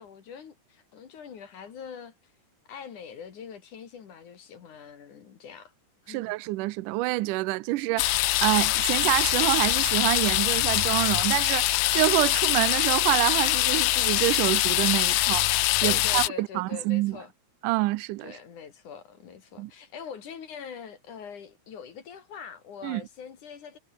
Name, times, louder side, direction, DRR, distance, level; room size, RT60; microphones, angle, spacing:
voice 1, 0.0-2.3 2.7-5.7 6.0-6.4 15.8-17.3 18.2-23.8, left 7 dB, 55° left, 3.5 m, -43 dB
voice 2, 6.1-15.5 15.8-17.2 17.6-18.4 19.6-19.7 22.8-23.0, right 20 dB, 85° right, 1.8 m, -27 dB
sound 1, 8.0-16.3, left 18 dB, 85° left, 2.0 m, -24 dB
omnidirectional pair, 4.6 m